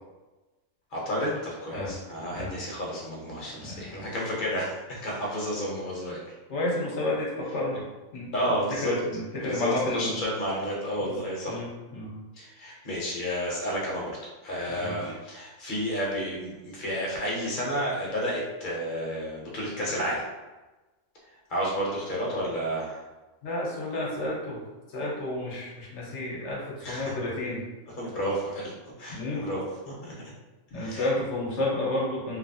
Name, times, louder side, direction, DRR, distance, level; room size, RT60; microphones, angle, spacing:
voice 1, 0.9-6.2 8.3-9.0 9.4-11.6 12.3-14.1 14.4-20.2 21.5-23.0 26.8-27.1 28.0-30.1 30.7-31.1, equal, 45° left, -4 dB, 0.9 m, -31 dB
voice 2, 3.5-4.1 6.5-7.8 8.1-8.3 8.7-10.2 11.0-11.2 11.5-12.1 14.7-15.1 23.4-24.6 24.9-27.6 29.1-29.5 30.7-32.4, left 1 dB, 65° left, -4 dB, 1.1 m, -31 dB
2.8 x 2.6 x 2.7 m, 1.1 s
omnidirectional pair, 1.3 m